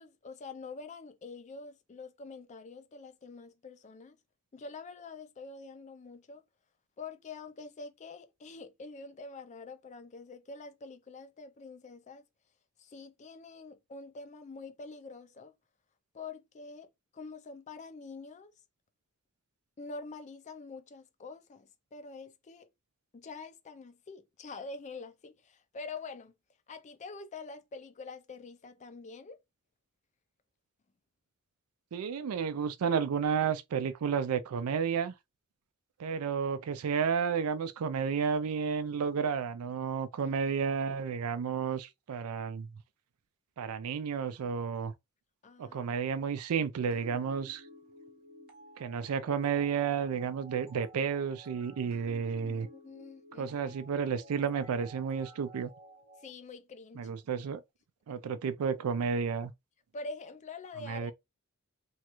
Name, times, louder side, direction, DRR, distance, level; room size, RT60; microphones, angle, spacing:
voice 1, 0.0-4.2 4.5-6.4 7.0-12.2 12.8-15.5 16.1-18.5 19.8-22.7 23.1-26.3 26.7-29.4 40.2-40.4 45.4-45.9 52.4-53.7 56.2-57.1 59.9-61.1, left 4 dB, 35° left, 0.4 m, -46 dB
voice 2, 31.9-35.1 36.0-42.7 43.6-44.9 45.6-47.6 48.8-52.7 53.4-55.7 57.0-57.6 58.1-59.5 60.8-61.1, right 6 dB, 75° right, 0.4 m, -32 dB
sound 1, 46.9-56.3, right 1 dB, 45° right, 0.7 m, -54 dB
3.1 x 2.4 x 2.9 m
head